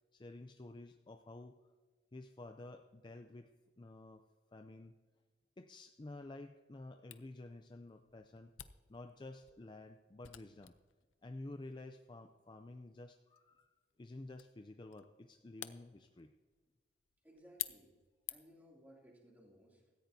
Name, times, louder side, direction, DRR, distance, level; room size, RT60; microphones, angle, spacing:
voice 1, 0.1-1.6 2.1-3.5 3.8-4.2 4.5-4.9 5.6-8.5 8.9-10.8 11.2-13.7 14.0-16.3, left 2 dB, 25° left, 7 dB, 0.4 m, -51 dB
Camera, 7.1-18.7, left 14 dB, 85° left, 0.6 m, -52 dB
voice 2, 17.2-17.9 18.3-19.8, equal, 10° right, -2 dB, 2.7 m, -61 dB
16.5 x 14.5 x 2.7 m, 1.4 s
head